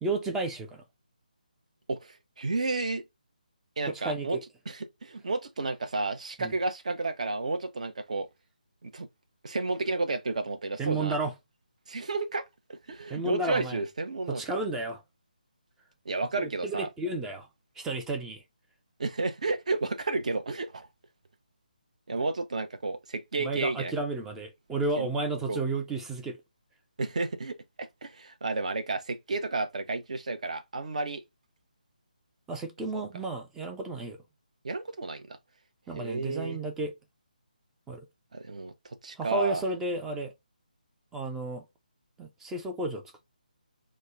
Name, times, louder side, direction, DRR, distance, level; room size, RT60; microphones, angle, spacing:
voice 1, 0.0-0.8 3.9-4.4 6.4-6.5 10.8-11.3 13.1-13.8 14.3-15.0 16.4-17.5 17.8-18.4 23.4-26.4 32.5-34.2 35.9-36.9 37.9-38.0 39.2-40.3 41.1-41.6 42.2-43.0, right 2 dB, 5° right, 0.4 m, -32 dB
voice 2, 1.9-3.0 3.8-4.4 4.7-8.3 8.8-9.1 9.4-11.1 11.9-12.4 12.7-14.4 16.1-16.9 19.0-20.9 22.1-23.9 25.0-25.1 25.5-25.6 27.0-31.2 32.9-33.0 34.6-35.3 35.9-36.6 38.3-38.7 39.0-39.6, right 3 dB, 50° right, 0.6 m, -31 dB
3.1 x 2.1 x 3.6 m
figure-of-eight pair, 150°, 5 cm